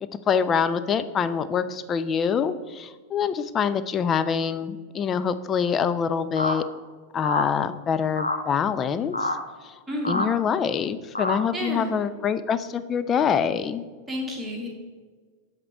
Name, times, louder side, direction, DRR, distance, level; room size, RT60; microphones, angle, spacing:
voice 1, 0.3-6.6 7.1-9.3 9.6-9.7 10.0-13.8, left 7 dB, 25° left, 12 dB, 0.4 m, -25 dB
sound 1, 6.4-6.6 7.2-7.5 8.2-8.4 9.1-9.4 10.1-10.3 11.2-11.4, left 2 dB, 85° left, 0.6 m, -26 dB
voice 2, 9.9-10.3 11.5-11.9 14.1-14.7, equal, 10° right, -2 dB, 1.7 m, -30 dB
7.8 x 3.7 x 4.4 m, 1.5 s
figure-of-eight pair, 90°, 0 cm